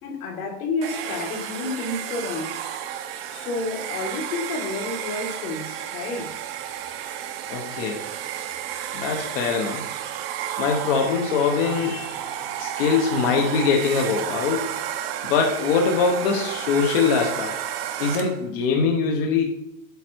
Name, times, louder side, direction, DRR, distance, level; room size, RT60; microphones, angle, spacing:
voice 1, 0.0-2.6 3.3-6.4, left 3 dB, 80° left, 2.6 m, -30 dB
Domestic sounds home sounds, 0.8-18.5, right 10 dB, 45° right, 0.8 m, -32 dB
voice 2, 7.5-8.0 8.9-9.9 10.6-12.1 12.6-14.7 15.2-17.5 18.0-19.4, left 5 dB, 40° left, 1.1 m, -22 dB
8.2 x 5.6 x 4.6 m
supercardioid pair, 180°, 43 cm